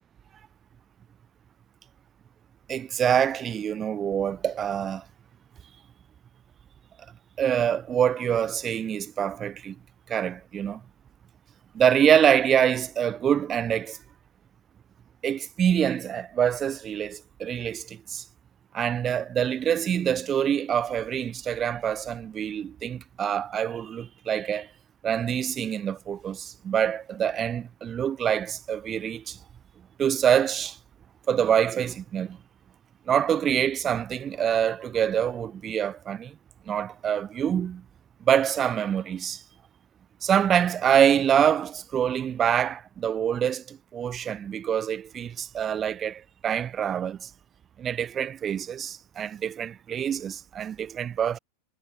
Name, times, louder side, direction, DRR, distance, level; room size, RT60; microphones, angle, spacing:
voice 1, 2.7-5.0 7.4-9.8 10.1-10.8 11.7-14.0 15.2-18.2 18.7-24.7 25.0-29.4 30.0-30.8 31.3-32.4 33.1-36.4 36.7-37.8 38.2-39.4 40.2-47.3 47.8-51.4, right 9 dB, 25° right, 1.3 m, -25 dB
figure-of-eight pair, 90°, 0 cm